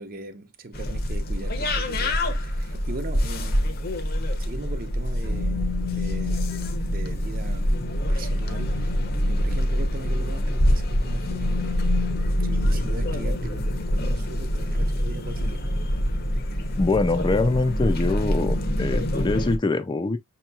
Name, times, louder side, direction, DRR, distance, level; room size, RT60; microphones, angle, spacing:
voice 1, 0.0-6.5 6.9-7.8 8.1-15.7, right 2 dB, 50° right, 0.7 m, -40 dB
sound 1, 0.7-19.6, equal, 55° left, 0.8 m, -25 dB
sound 2, 5.2-14.4, left 4 dB, 75° left, 1.4 m, -33 dB
voice 2, 16.8-20.2, left 3 dB, 25° left, 0.4 m, -24 dB
6.0 x 2.9 x 2.3 m
head